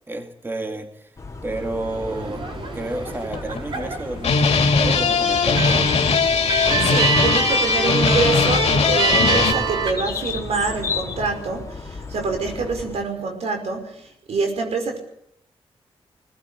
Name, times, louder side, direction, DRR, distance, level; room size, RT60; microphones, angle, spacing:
voice 1, 0.1-1.2 1.4-2.5 2.7-5.9, right 2 dB, 20° right, 5 dB, 2.2 m, -30 dB
sound 1, 1.2-13.0, left 4 dB, 30° left, 3.5 m, -35 dB
sound 2, 1.5-9.9, right 5 dB, 55° right, 4.5 m, -26 dB
sound 3, 2.5-2.6 3.2-3.9 4.2-9.5, left 5 dB, 80° left, 2.5 m, -19 dB
voice 2, 6.8-15.0, right 4 dB, 90° right, 5 dB, 5.4 m, -26 dB
21.5 x 19.0 x 8.9 m, 0.74 s
wide cardioid pair, 120°, 11 cm